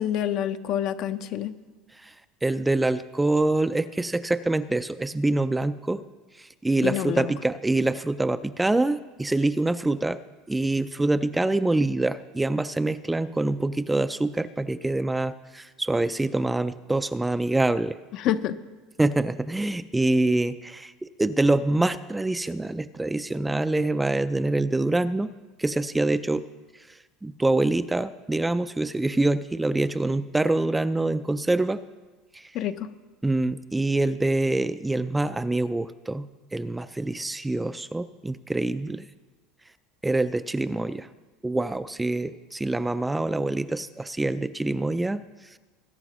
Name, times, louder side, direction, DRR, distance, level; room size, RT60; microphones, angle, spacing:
voice 1, 0.0-1.5 6.8-7.3 18.1-18.6 32.5-32.9, left 10 dB, 55° left, 11 dB, 0.6 m, -27 dB
voice 2, 2.4-6.0 6.6-10.2 10.5-18.0 19.0-25.3 25.6-26.4 27.2-31.8 32.3-32.4 33.2-39.1 40.0-41.1 41.4-45.2, right 2 dB, 10° right, 12 dB, 0.3 m, -25 dB
20.5 x 9.8 x 3.1 m, 1.3 s
supercardioid pair, 125°, 0 cm